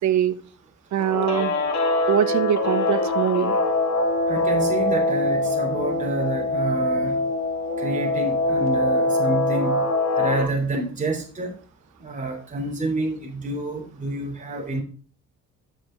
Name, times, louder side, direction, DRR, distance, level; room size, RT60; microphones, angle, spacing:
voice 1, 0.0-0.3 0.9-1.5 2.1-3.6, right 10 dB, 70° right, 12 dB, 1.1 m, -22 dB
Guitar, 1.0-10.4, left 2 dB, 65° left, 3.6 m, -23 dB
voice 2, 4.3-7.2 7.8-9.8 10.1-11.6 12.0-14.8, right 2 dB, 25° right, -1 dB, 3.2 m, -28 dB
12.0 x 6.9 x 3.8 m, 0.41 s
cardioid pair, 90°, 30 cm